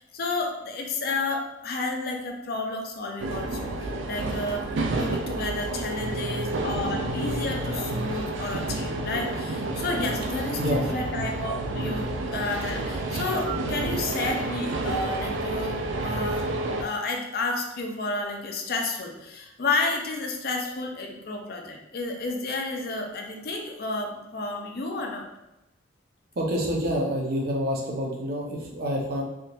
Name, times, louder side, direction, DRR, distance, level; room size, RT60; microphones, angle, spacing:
voice 1, 0.0-4.7 4.9-16.5 16.8-25.3, left 3 dB, 55° left, 2 dB, 0.5 m, -31 dB
sound 1, 3.2-16.8, right 2 dB, 90° right, 0.4 m, -30 dB
voice 2, 26.3-29.2, equal, 55° right, -1 dB, 0.7 m, -27 dB
3.5 x 2.8 x 2.4 m, 0.93 s
head